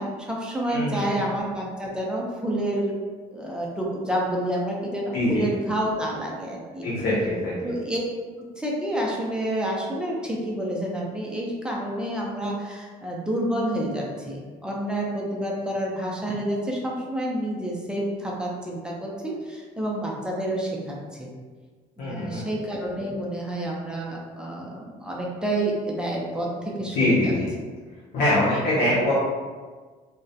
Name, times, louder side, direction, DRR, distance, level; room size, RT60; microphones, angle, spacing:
voice 1, 0.0-2.9 3.3-6.9 7.6-8.0 8.6-21.3 22.0-27.3 28.5-29.1, right 1 dB, 5° right, -3 dB, 0.4 m, -29 dB
voice 2, 0.7-1.2 5.1-5.5 6.8-7.7 22.0-22.4 26.9-27.5 28.1-29.1, left 1 dB, 75° left, -8 dB, 0.7 m, -23 dB
2.2 x 2.1 x 2.6 m, 1.5 s
cardioid pair, 110°, 17 cm